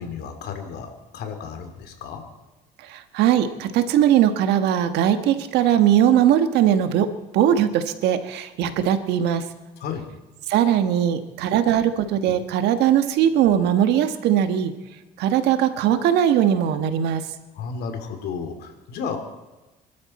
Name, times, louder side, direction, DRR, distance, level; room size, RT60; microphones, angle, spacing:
voice 1, 0.0-2.2 9.8-10.0 17.5-19.2, left 6 dB, 75° left, 6 dB, 2.8 m, -33 dB
voice 2, 2.9-7.1 7.3-9.4 10.5-14.7 15.2-17.2, right 10 dB, 85° right, 9 dB, 1.5 m, -20 dB
24.5 x 12.5 x 4.3 m, 1.1 s
cardioid pair, 110°, 17 cm